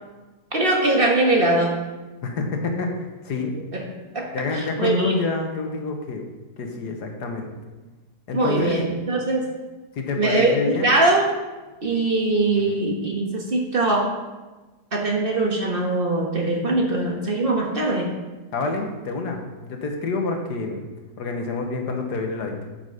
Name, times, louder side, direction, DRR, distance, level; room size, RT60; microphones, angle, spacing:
voice 1, 0.5-1.8 3.7-3.8 4.1-5.2 8.3-9.4 10.1-10.5 10.8-11.3 11.8-14.1 14.9-18.1, right 2 dB, 35° right, -1 dB, 1.5 m, -22 dB
voice 2, 2.2-3.5 4.3-6.2 6.6-7.5 8.3-8.8 10.0-10.9 12.7-12.8 18.5-20.8 21.2-22.5, left 3 dB, 80° left, 3 dB, 1.8 m, -27 dB
9.2 x 6.1 x 6.5 m, 1.2 s
omnidirectional pair, 1.7 m